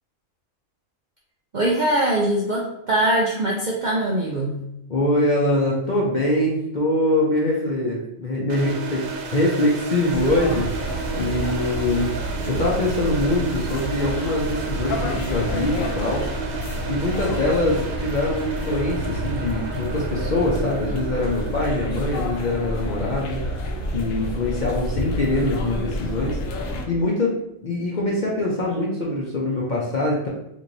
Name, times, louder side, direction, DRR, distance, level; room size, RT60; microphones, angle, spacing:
voice 1, 1.5-4.7, right 1 dB, 60° right, -3 dB, 0.5 m, -22 dB
voice 2, 4.9-12.2 12.5-16.3 16.9-23.4 23.9-30.3, left 1 dB, 50° left, -3 dB, 0.6 m, -23 dB
sound 1, 8.5-25.3, right 5 dB, 75° right, 1.0 m, -34 dB
sound 2, 10.1-26.8, left 1 dB, 75° left, 1.0 m, -29 dB
3.1 x 2.6 x 3.8 m, 0.81 s
omnidirectional pair, 1.4 m